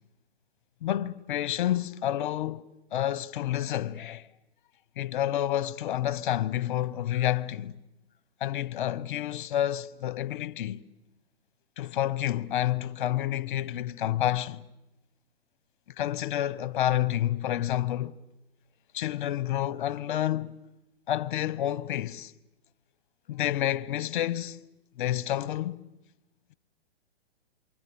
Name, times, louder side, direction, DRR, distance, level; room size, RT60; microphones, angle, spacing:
voice 1, 0.8-4.3 5.0-7.8 8.4-10.8 11.8-14.6 16.0-18.2 18.9-20.6 21.1-22.3 23.3-24.6 25.0-25.8, left 12 dB, 50° left, 0.9 m, -29 dB
28.0 x 24.0 x 7.0 m
hypercardioid pair, 135°, 32 cm